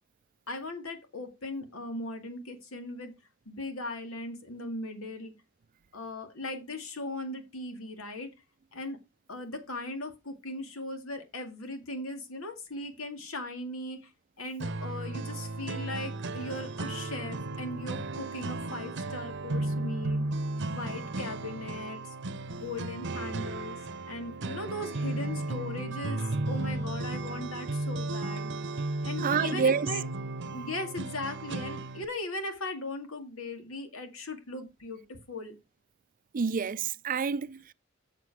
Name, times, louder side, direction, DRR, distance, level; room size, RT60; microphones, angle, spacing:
voice 1, 0.5-3.1 3.5-5.3 5.9-8.3 8.7-9.0 9.3-14.0 14.4-20.2 20.7-22.1 22.5-23.8 24.1-28.5 29.0-30.1 30.5-35.6, left 2 dB, 85° left, 2.2 m, -38 dB
sound 1, 14.6-32.0, right 2 dB, 60° right, 0.8 m, -34 dB
voice 2, 29.2-29.9 36.3-37.7, right 6 dB, 40° right, 0.4 m, -28 dB
7.6 x 6.8 x 4.8 m
head